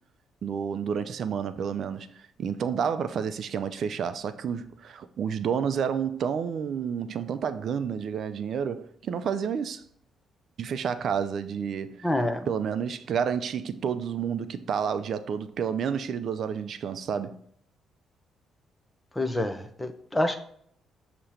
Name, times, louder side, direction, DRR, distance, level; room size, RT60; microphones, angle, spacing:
voice 1, 0.4-9.8 10.6-12.1 12.5-17.4, right 7 dB, 60° right, 0.5 m, -30 dB
voice 2, 12.0-12.5 19.1-20.4, left 1 dB, 10° left, 0.9 m, -27 dB
6.5 x 2.9 x 5.7 m
cardioid pair, 90°, 0 cm